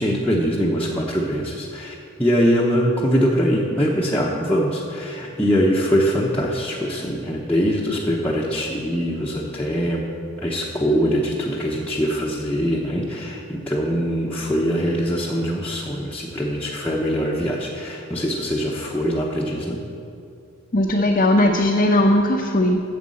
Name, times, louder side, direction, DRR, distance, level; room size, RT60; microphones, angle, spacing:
voice 1, 0.0-10.0 10.4-19.8, equal, 10° left, -6 dB, 0.8 m, -22 dB
voice 2, 20.7-22.8, left 1 dB, 40° left, -1 dB, 0.7 m, -18 dB
9.5 x 7.4 x 7.5 m, 2.5 s
head